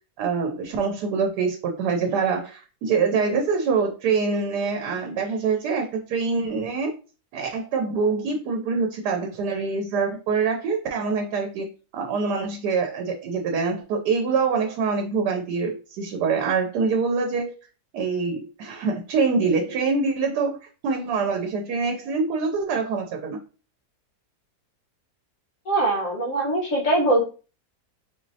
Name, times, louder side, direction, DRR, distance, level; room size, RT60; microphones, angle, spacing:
voice 1, 0.2-7.0 7.3-17.5 17.9-20.6 20.8-23.4, right 5 dB, 90° right, 3 dB, 1.2 m, -25 dB
voice 2, 25.7-27.2, right 1 dB, 55° left, -1 dB, 1.4 m, -22 dB
4.0 x 3.0 x 2.6 m, 0.36 s
omnidirectional pair, 1.7 m